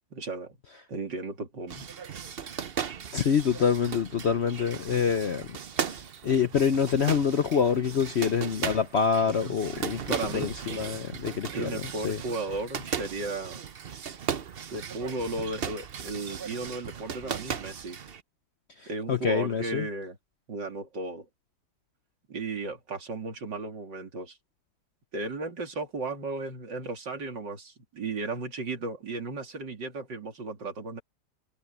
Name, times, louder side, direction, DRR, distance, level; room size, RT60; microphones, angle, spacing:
voice 1, 0.1-0.6 0.9-1.9 9.4-10.5 11.5-13.6 14.7-18.0 18.9-20.2 20.5-21.3 22.3-24.4 25.1-31.0, right 3 dB, 80° right, 3.5 m, -35 dB
sound 1, 1.7-18.2, right 7 dB, 45° right, 0.7 m, -37 dB
voice 2, 3.1-5.5 5.8-11.7 12.0-12.2 19.1-19.9, left 7 dB, 55° left, 0.7 m, -26 dB
omnidirectional pair, 1.9 m